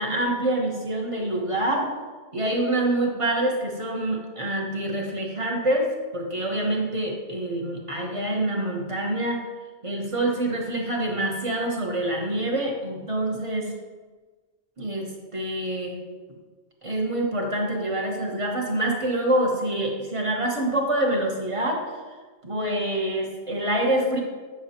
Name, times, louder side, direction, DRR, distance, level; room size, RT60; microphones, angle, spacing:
voice 1, 0.0-1.9 2.3-9.4 9.8-13.7 14.8-16.0 16.8-21.8 22.4-24.2, right 1 dB, 30° right, 0 dB, 1.1 m, -26 dB
8.7 x 6.3 x 2.9 m, 1.4 s
omnidirectional pair, 1.2 m